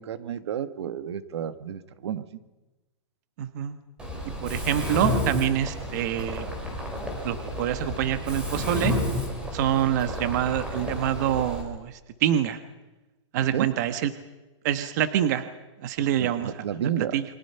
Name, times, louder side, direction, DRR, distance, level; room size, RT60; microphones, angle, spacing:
voice 1, 0.0-2.3 13.5-13.7 16.2-17.2, right 9 dB, 60° right, 12 dB, 1.5 m, -31 dB
voice 2, 3.4-3.8 4.4-6.5 7.2-8.9 9.5-12.6 13.3-14.1 14.6-15.4 15.8-16.5 17.0-17.2, right 11 dB, 35° right, 10 dB, 1.2 m, -26 dB
Mechanisms, 4.0-11.6, left 1 dB, 5° right, 3.9 m, -31 dB
29.0 x 24.0 x 5.7 m, 1.1 s
hypercardioid pair, 170°, 16 cm